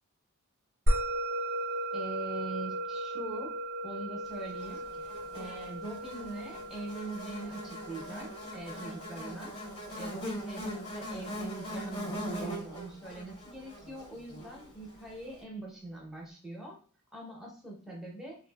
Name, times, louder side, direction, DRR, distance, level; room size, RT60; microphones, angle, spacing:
Musical instrument, 0.9-11.5, right 1 dB, 40° right, 0.7 m, -36 dB
voice 1, 1.9-3.6 3.8-9.5 9.9-16.8 17.1-18.4, right 2 dB, ahead, -3 dB, 0.7 m, -42 dB
Buzz, 4.6-15.0, equal, 70° left, 1.2 m, -41 dB
2.6 x 2.5 x 2.2 m, 0.43 s
head